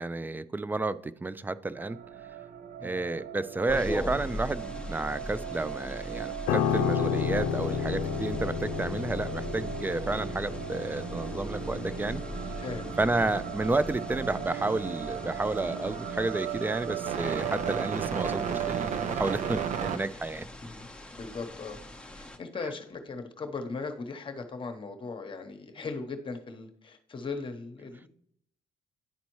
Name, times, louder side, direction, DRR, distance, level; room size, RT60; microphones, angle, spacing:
voice 1, 0.0-2.0 2.8-12.2 13.0-20.5, right 2 dB, 10° right, 16 dB, 0.3 m, -31 dB
sound 1, 1.8-20.0, right 8 dB, 50° right, 0.6 m, -36 dB
sound 2, 3.7-22.4, left 1 dB, 5° left, 0.8 m, -41 dB
Piano, 6.5-15.8 16.1-16.4, left 9 dB, 85° left, 0.4 m, -33 dB
voice 2, 12.6-12.9 13.2-13.3 20.6-21.8 22.1-28.1, left 4 dB, 35° left, 6 dB, 0.9 m, -38 dB
10.5 x 4.1 x 3.1 m, 0.70 s
cardioid pair, 95°, 16 cm